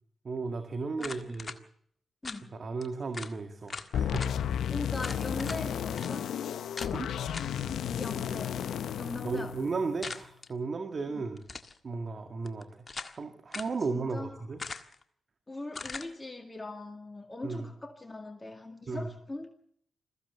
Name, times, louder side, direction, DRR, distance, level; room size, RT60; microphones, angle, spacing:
voice 1, 0.2-1.5 2.5-4.3 4.8-4.9 6.9-7.1 9.2-11.4 11.8-12.9 13.2-14.6 17.4-17.7 18.9-19.1, right 4 dB, 50° right, 2.0 m, -35 dB
sound 1, 1.0-1.6 2.2-2.4 2.8-2.9 3.1-3.3 3.7-4.3 5.0-5.6 6.0-6.1 6.8-6.9 7.3-7.6 10.0-10.5 11.4-11.8 12.5-13.2 13.5-13.8 14.6-15.0 15.7-16.1, left 4 dB, 40° left, 1.7 m, -40 dB
voice 2, 1.0-1.3 2.2-2.6 4.7-6.3 8.0-8.7 9.0-9.6 11.1-11.3 13.9-14.5 15.5-19.5, left 2 dB, 25° left, 2.1 m, -41 dB
sound 2, 3.9-10.1, left 9 dB, 80° left, 0.7 m, -33 dB
21.0 x 15.0 x 8.1 m
supercardioid pair, 55°, 0 cm